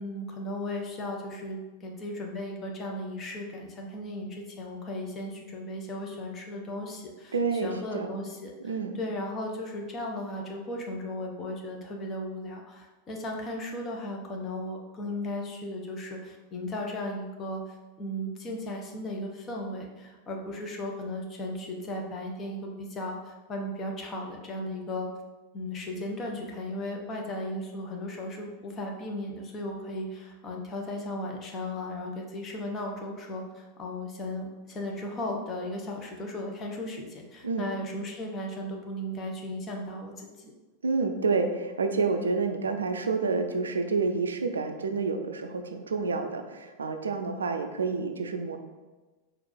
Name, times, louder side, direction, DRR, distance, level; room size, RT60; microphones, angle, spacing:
voice 1, 0.0-7.3 7.6-25.1 25.5-40.5, left 1 dB, 25° left, 0 dB, 0.8 m, -36 dB
voice 2, 7.3-8.1 8.6-8.9 37.4-37.7 40.8-48.6, right 4 dB, 70° right, 6 dB, 0.4 m, -29 dB
4.4 x 2.6 x 4.2 m, 1.2 s
figure-of-eight pair, 90°, 0 cm